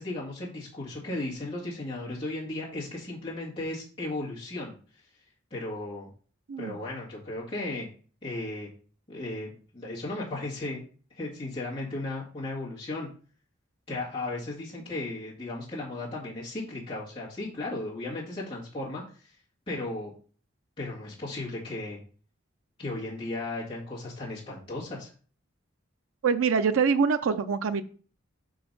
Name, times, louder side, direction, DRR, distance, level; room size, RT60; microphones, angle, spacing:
voice 1, 0.0-4.7 5.5-6.1 6.6-7.9 8.2-8.7 9.1-10.8 11.1-13.1 13.9-19.3 19.7-20.1 20.8-22.0 22.8-25.1, left 2 dB, 25° left, -7 dB, 1.8 m, -35 dB
voice 2, 26.2-27.8, right 5 dB, 90° right, 9 dB, 0.5 m, -24 dB
5.7 x 3.9 x 5.3 m, 0.40 s
head